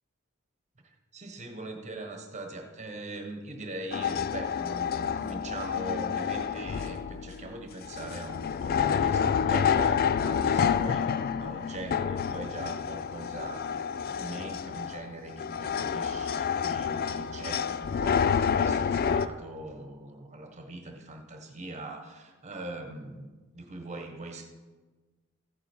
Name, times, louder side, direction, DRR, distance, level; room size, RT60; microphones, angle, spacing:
voice 1, 1.1-13.7 14.1-24.5, right 2 dB, 35° right, 4 dB, 1.3 m, -41 dB
sound 1, 3.9-19.3, left 7 dB, 45° left, 0.4 m, -29 dB
14.5 x 7.9 x 4.5 m, 1.3 s
head